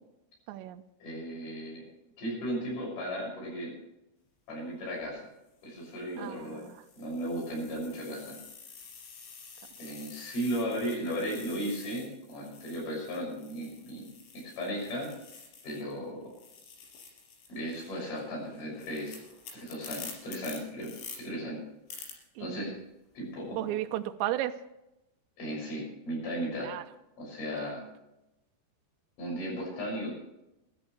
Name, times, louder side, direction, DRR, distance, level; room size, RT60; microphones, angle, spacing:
voice 1, 0.5-0.8 6.2-6.8 22.4-22.7 23.5-24.6 26.6-26.8, right 13 dB, 85° right, 7 dB, 2.9 m, -34 dB
voice 2, 1.0-1.8 2.2-3.7 4.5-5.2 5.6-6.7 7.0-8.4 9.8-14.1 14.3-15.1 15.6-16.2 17.5-19.2 19.5-21.6 22.4-22.7 23.1-23.7 25.4-26.7 27.2-27.8 29.2-30.1, equal, 45° left, -2 dB, 7.9 m, -35 dB
sound 1, 4.8-5.1 5.8-16.0 16.3-21.2 21.9-22.1, left 5 dB, 85° left, 6.3 m, -49 dB
22.5 x 13.0 x 3.2 m, 0.90 s
omnidirectional pair, 5.3 m